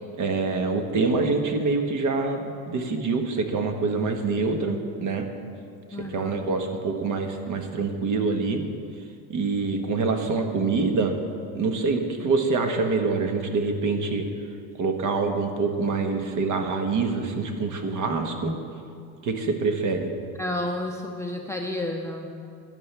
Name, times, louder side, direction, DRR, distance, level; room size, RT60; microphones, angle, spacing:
voice 1, 0.2-5.2 6.1-8.6 9.3-11.2 11.5-14.3 14.8-18.5 19.2-20.1, right 4 dB, 40° right, 5 dB, 1.5 m, -25 dB
voice 2, 5.9-6.4 20.4-22.3, left 1 dB, 5° left, 2 dB, 0.7 m, -31 dB
16.0 x 11.0 x 3.4 m, 2.4 s
supercardioid pair, 105°, 48 cm